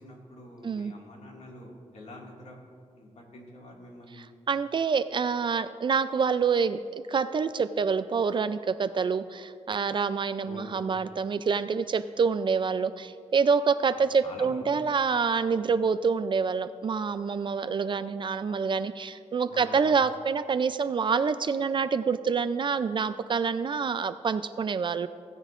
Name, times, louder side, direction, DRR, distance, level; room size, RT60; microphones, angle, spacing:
voice 1, 0.0-2.6 2.9-4.3 10.4-10.8 13.9-14.6 19.5-20.0, left 1 dB, 70° left, -1 dB, 2.0 m, -46 dB
voice 2, 4.2-25.1, right 5 dB, 40° right, 13 dB, 0.3 m, -27 dB
17.5 x 10.0 x 2.5 m, 2.3 s
wide cardioid pair, 135°, 12 cm